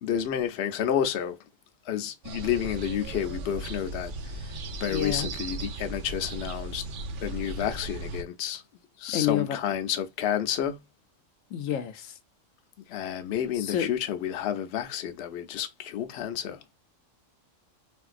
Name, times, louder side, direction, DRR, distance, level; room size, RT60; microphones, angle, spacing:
voice 1, 0.0-1.4 1.8-6.8 7.2-8.6 9.0-10.8 12.9-16.7, left 9 dB, 65° left, 0.7 m, -30 dB
sound 1, 2.2-8.2, right 3 dB, 65° right, 0.5 m, -36 dB
voice 2, 4.9-5.3 9.1-9.6 11.5-12.2 13.6-13.9, left 10 dB, 85° left, 1.0 m, -29 dB
3.5 x 2.5 x 2.4 m
omnidirectional pair, 1.3 m